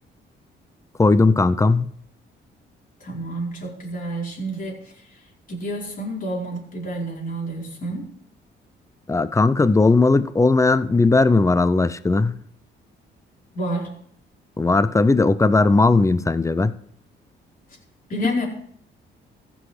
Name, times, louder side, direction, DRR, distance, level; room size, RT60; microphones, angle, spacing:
voice 1, 1.0-1.9 9.1-12.4 14.6-16.7, left 3 dB, 15° left, 0.6 m, -17 dB
voice 2, 3.0-5.2 5.5-8.1 13.5-13.9 18.1-18.5, right 1 dB, 45° left, 4.7 m, -29 dB
15.0 x 6.2 x 5.0 m
cardioid pair, 90°, 20 cm